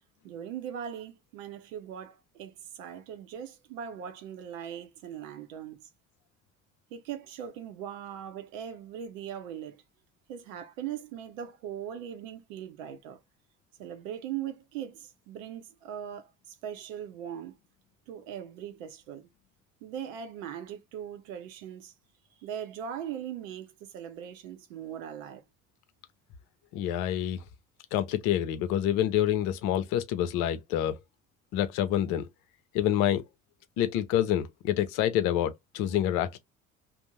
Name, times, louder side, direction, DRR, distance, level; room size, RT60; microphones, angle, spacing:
voice 1, 0.2-5.9 6.9-9.8 10.3-13.2 13.8-16.3 16.6-17.6 18.1-19.3 19.8-21.9 22.4-25.4, right 9 dB, 65° right, 0.7 m, -40 dB
voice 2, 26.7-27.4 27.9-31.0 31.5-32.3 32.7-33.2 33.8-36.4, left 11 dB, 45° left, 0.5 m, -27 dB
2.6 x 2.0 x 2.9 m
figure-of-eight pair, 55°, 43 cm